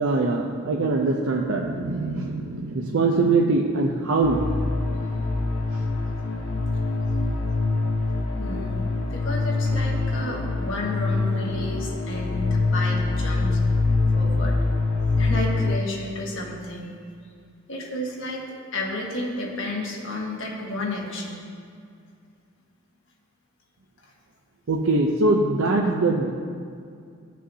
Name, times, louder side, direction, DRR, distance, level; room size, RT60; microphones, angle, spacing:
voice 1, 0.0-4.4 5.7-5.8 24.7-26.3, right 3 dB, 70° right, 0 dB, 0.5 m, -22 dB
sound 1, 4.2-15.8, left 3 dB, 85° left, 1.0 m, -24 dB
voice 2, 8.4-8.8 9.1-13.6 14.1-14.6 15.2-17.0 17.7-18.4 18.7-21.4, left 1 dB, 65° left, -2 dB, 1.5 m, -32 dB
15.0 x 6.2 x 2.8 m, 2.3 s
head